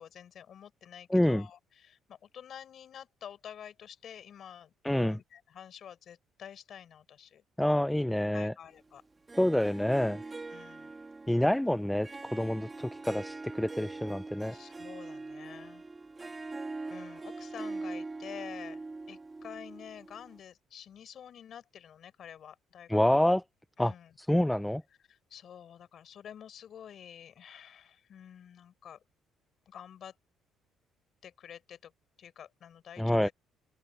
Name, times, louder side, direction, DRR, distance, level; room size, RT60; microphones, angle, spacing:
voice 1, 0.0-7.4 8.3-9.0 9.6-9.8 10.5-10.9 14.5-15.8 16.9-23.2 23.8-24.1 25.1-29.0 29.7-30.1 31.2-31.9 32.2-33.3, left 9 dB, 55° left, 5.3 m, -49 dB
voice 2, 1.1-1.5 4.8-5.2 7.6-8.5 9.4-10.2 11.3-14.6 22.9-23.4 23.8-23.9 24.2-24.8 33.0-33.3, left 1 dB, 5° left, 0.5 m, -27 dB
Harp, 9.3-20.4, right 3 dB, 20° right, 2.1 m, -42 dB
cardioid pair, 120°, 0 cm